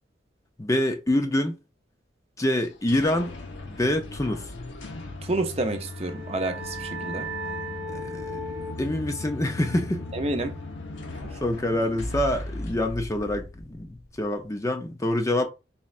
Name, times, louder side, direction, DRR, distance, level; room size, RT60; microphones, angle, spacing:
voice 1, 0.6-1.6 2.4-3.3 3.7-4.5 7.9-8.5 8.8-10.0 11.4-15.5, left 1 dB, 15° left, 0.4 m, -26 dB
sound 1, 2.6-14.2, left 2 dB, 85° left, 0.8 m, -38 dB
voice 2, 5.3-7.3 10.1-10.5, right 2 dB, 35° right, 0.6 m, -29 dB
sound 2, 5.7-11.0, right 1 dB, 75° right, 0.8 m, -38 dB
4.2 x 3.2 x 2.4 m
head